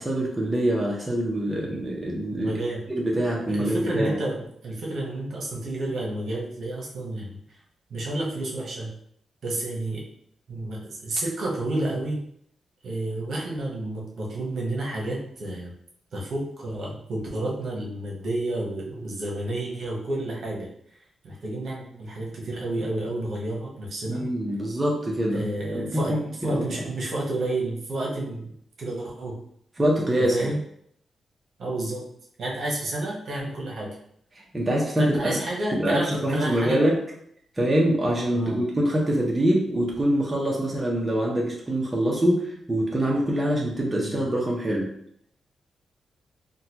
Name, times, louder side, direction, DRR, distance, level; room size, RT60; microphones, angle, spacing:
voice 1, 0.0-2.6 2.9-4.2 24.1-25.5 25.7-26.9 29.8-30.5 34.5-35.4 35.7-37.0 37.6-44.9, right 1 dB, 20° right, -3 dB, 0.7 m, -24 dB
voice 2, 2.3-2.8 3.5-4.4 4.6-7.4 7.9-8.9 9.4-10.0 10.5-12.2 12.8-15.7 16.1-20.7 21.2-24.2 25.3-26.1 26.4-28.5 28.8-29.4 30.2-30.6 31.6-32.0 32.4-34.0 35.0-36.8 38.3-38.6 44.0-44.2, right 2 dB, 65° right, -3 dB, 1.0 m, -30 dB
3.8 x 2.3 x 2.9 m, 0.69 s
cardioid pair, 100°, 0 cm